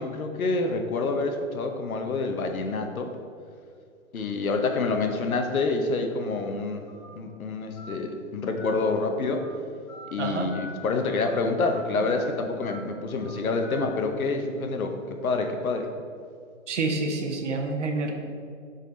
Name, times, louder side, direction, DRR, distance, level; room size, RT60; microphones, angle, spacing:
voice 1, 0.0-3.1 4.1-6.8 7.1-9.5 10.1-14.9 15.2-15.9, left 3 dB, 85° left, 5 dB, 1.0 m, -27 dB
Telephone, 6.9-7.0 7.8-7.9 8.6-8.7 9.2-9.5 9.9-10.1 10.5-10.7 11.1-11.3 11.6-11.8 12.1-12.3 12.6-12.8 13.1-13.3 13.6-13.8, left 1 dB, 25° left, 0.8 m, -44 dB
voice 2, 10.2-10.5 16.7-18.1, right 3 dB, 60° right, 4 dB, 0.9 m, -28 dB
8.2 x 4.2 x 3.9 m, 2.3 s
hypercardioid pair, 170°, 41 cm